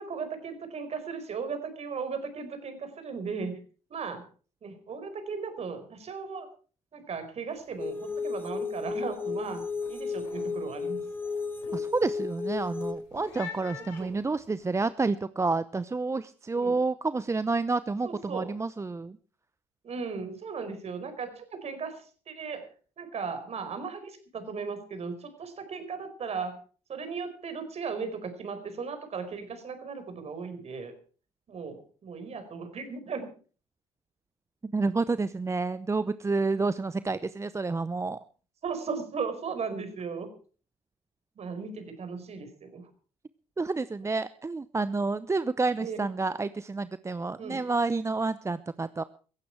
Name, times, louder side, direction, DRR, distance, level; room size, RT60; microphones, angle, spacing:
voice 1, 0.0-3.6 3.9-4.2 4.6-6.5 6.9-9.6 9.9-11.0 11.7-11.8 14.0-14.1 16.5-16.8 18.0-18.5 19.8-22.7 23.0-26.6 26.9-30.9 31.5-33.3 38.6-40.3 41.4-42.9 45.8-46.0 47.4-47.6, right 5 dB, 45° right, 10 dB, 4.6 m, -36 dB
sound 1, 7.5-7.8 8.0-8.5 8.9-14.8, left 6 dB, 80° left, 4.9 m, -48 dB
sound 2, 7.8-12.9, left 4 dB, 15° left, 2.9 m, -33 dB
voice 2, 11.7-19.2 34.6-38.2 43.6-49.0, right 3 dB, 20° right, 15 dB, 0.7 m, -29 dB
16.5 x 15.5 x 4.6 m, 0.39 s
hypercardioid pair, 55°, 15 cm